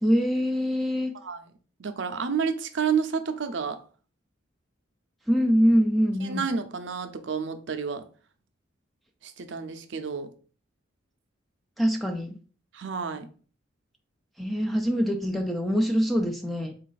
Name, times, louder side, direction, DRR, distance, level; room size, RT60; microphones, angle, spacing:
voice 1, 0.0-1.1 5.3-6.5 11.8-12.4 14.4-16.7, equal, ahead, 0.3 m, -24 dB
voice 2, 1.8-3.8 6.2-8.0 9.2-10.3 12.7-13.3, right 6 dB, 65° right, 0.5 m, -30 dB
4.1 x 2.4 x 3.9 m
head